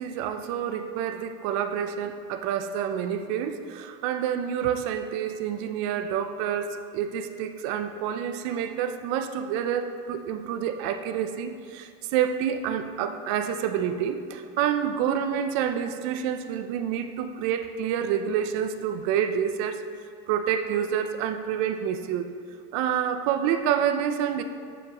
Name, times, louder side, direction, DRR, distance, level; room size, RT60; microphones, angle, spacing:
voice 1, 0.0-19.8 20.3-22.3 22.7-24.4, right 9 dB, 70° right, 8 dB, 0.5 m, -28 dB
7.1 x 7.1 x 2.9 m, 2.3 s
supercardioid pair, 140°, 18 cm